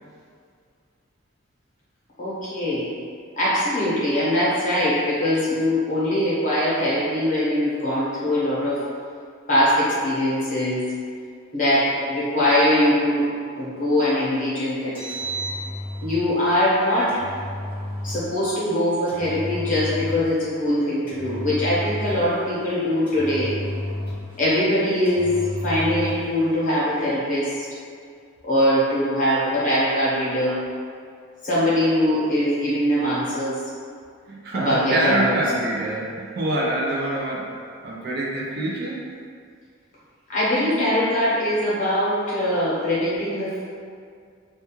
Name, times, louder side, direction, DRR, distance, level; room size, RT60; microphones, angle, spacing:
voice 1, 2.2-2.9 3.4-8.8 9.5-10.9 11.5-13.3 13.6-15.2 16.0-17.2 18.0-23.5 24.4-27.7 28.4-30.6 31.4-33.6 34.5-35.4 40.3-43.7, left 1 dB, 40° left, -9 dB, 0.8 m, -22 dB
Engine, 14.8-16.3 17.1-18.3 19.1-20.3 21.1-22.4 23.1-24.4 25.0-26.3, equal, 10° right, 0.9 m, -31 dB
voice 2, 34.3-37.5 37.8-39.1, right 1 dB, 50° right, -3 dB, 0.4 m, -25 dB
2.3 x 2.3 x 2.9 m, 2.2 s
head